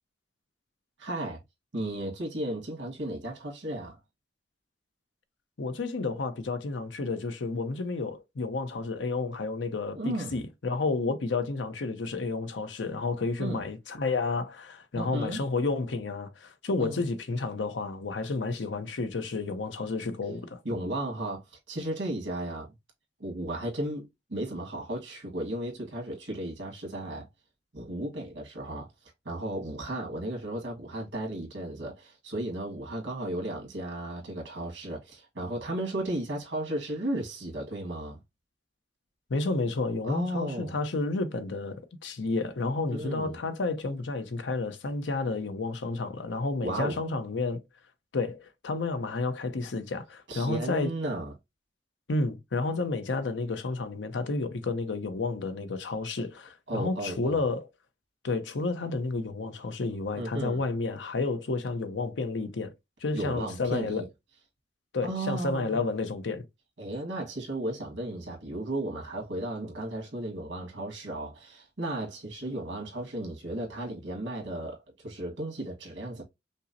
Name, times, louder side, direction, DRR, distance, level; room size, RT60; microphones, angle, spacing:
voice 1, 1.0-1.4 1.7-4.0 9.9-10.4 13.4-13.7 14.9-15.4 16.8-17.0 20.6-22.7 23.2-27.3 27.7-28.9 29.2-38.2 40.0-40.8 42.9-43.4 46.6-47.0 50.3-51.3 56.7-57.4 60.2-60.6 63.1-64.1 65.0-65.8 66.8-76.2, right 1 dB, 85° right, 1.6 m, -34 dB
voice 2, 5.6-20.6 39.3-47.6 48.1-50.9 52.1-57.7 58.2-62.7 63.0-64.1 64.9-66.4, left 3 dB, 85° left, 0.7 m, -31 dB
5.3 x 2.0 x 2.6 m
head